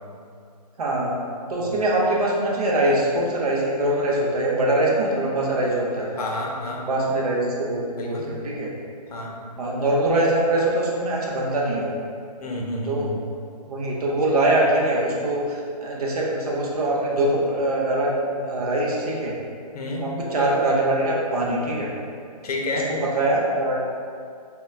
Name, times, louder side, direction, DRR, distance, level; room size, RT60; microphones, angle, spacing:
voice 1, 0.8-1.2 1.5-6.1 6.8-8.7 9.6-11.9 12.8-13.1 13.7-19.4 20.0-21.9 23.0-23.8, right 1 dB, 65° right, -3 dB, 0.7 m, -23 dB
voice 2, 6.2-6.8 7.9-8.3 9.1-9.4 12.4-13.2 19.7-20.1 22.4-22.9, left 2 dB, 65° left, -1 dB, 0.6 m, -29 dB
3.1 x 2.2 x 2.3 m, 2.3 s
hypercardioid pair, 165°, 21 cm